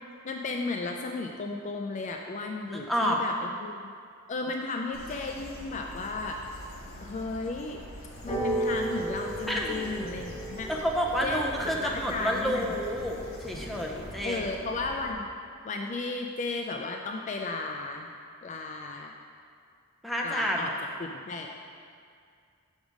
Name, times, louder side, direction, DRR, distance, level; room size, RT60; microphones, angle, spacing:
voice 1, 0.2-3.8 4.3-6.4 7.0-7.8 8.2-10.7 11.2-12.8 14.2-15.3 15.6-18.1 18.4-19.1 20.2-20.7 21.0-21.6, left 3 dB, 35° left, 2 dB, 0.3 m, -34 dB
voice 2, 2.7-3.2 9.5-9.9 10.7-14.5 20.0-20.6, equal, ahead, -2 dB, 0.6 m, -29 dB
sound 1, 4.9-15.1, equal, 75° left, 1.2 m, -45 dB
sound 2, 8.2-14.2, right 1 dB, 20° left, 1.0 m, -35 dB
6.0 x 5.3 x 5.1 m, 2.3 s
head